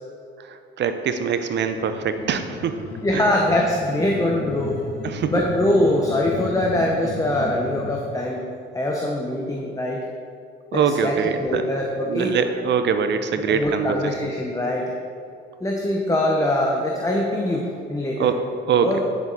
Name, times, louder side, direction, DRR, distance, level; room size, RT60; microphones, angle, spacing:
voice 1, 0.4-2.8 3.1-3.5 5.0-5.5 10.7-11.7 12.1-14.3 18.2-19.0, right 6 dB, 65° right, 9 dB, 0.7 m, -24 dB
sound 1, 1.7-8.0, left 4 dB, 60° left, 1.2 m, -35 dB
voice 2, 3.0-4.9 5.3-8.4 8.7-10.0 10.7-12.5 13.5-14.9 15.6-18.4 18.8-19.0, left 1 dB, 15° left, -1 dB, 1.0 m, -23 dB
10.0 x 7.1 x 4.1 m, 2.4 s
cardioid pair, 90°, 20 cm